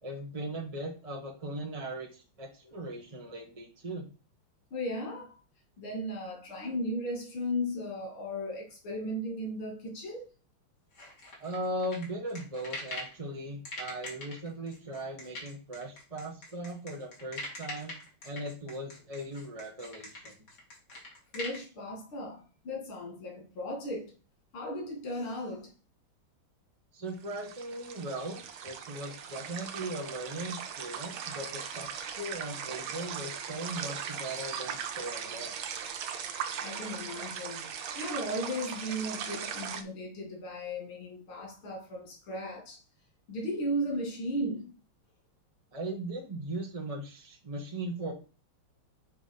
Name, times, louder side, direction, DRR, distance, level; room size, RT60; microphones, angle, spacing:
voice 1, 0.0-4.1 11.4-17.9 18.2-20.3 26.9-35.6 45.7-48.1, right 1 dB, 25° right, 1.0 m, -38 dB
voice 2, 4.7-5.3 5.8-10.3 21.3-24.1 24.5-25.7 36.6-37.7 37.9-42.8 43.3-44.7, equal, 90° left, 3.3 m, -36 dB
sound 1, 10.9-13.2 13.6-21.6, left 2 dB, 55° left, 2.8 m, -42 dB
sound 2, 27.1-39.8, right 8 dB, 85° right, 1.6 m, -39 dB
7.1 x 3.0 x 5.4 m
omnidirectional pair, 2.3 m